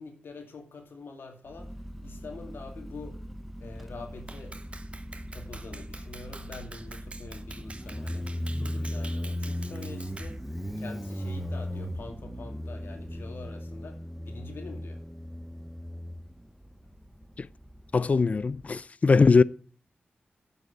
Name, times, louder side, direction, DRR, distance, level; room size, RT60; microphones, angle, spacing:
voice 1, 0.0-1.7 2.0-3.2 3.6-4.6 5.3-8.2 8.6-10.4 10.8-14.0 14.3-15.0 19.2-19.3, left 3 dB, 80° left, 2.3 m, -45 dB
Motorcycle, 1.5-18.7, equal, 5° right, 0.8 m, -37 dB
Clapping, 4.3-10.4, right 3 dB, 35° right, 0.8 m, -47 dB
voice 2, 17.9-19.4, left 4 dB, 40° left, 0.4 m, -21 dB
7.8 x 7.8 x 7.1 m
wide cardioid pair, 120°, 4 cm